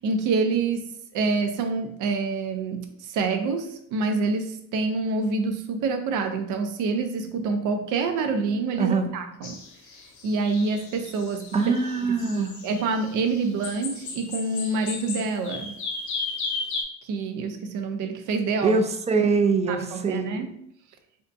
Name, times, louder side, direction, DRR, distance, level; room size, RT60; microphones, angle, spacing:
voice 1, 0.0-9.6 10.2-11.8 12.3-15.7 17.0-18.8 19.7-20.5, right 4 dB, 85° right, 7 dB, 0.5 m, -27 dB
voice 2, 8.8-9.1 11.5-12.6 18.6-20.4, right 4 dB, 20° right, 6 dB, 0.4 m, -23 dB
sound 1, 9.4-16.8, left 4 dB, 70° left, 0.7 m, -35 dB
3.5 x 2.6 x 2.4 m, 0.70 s
cardioid pair, 90°, 30 cm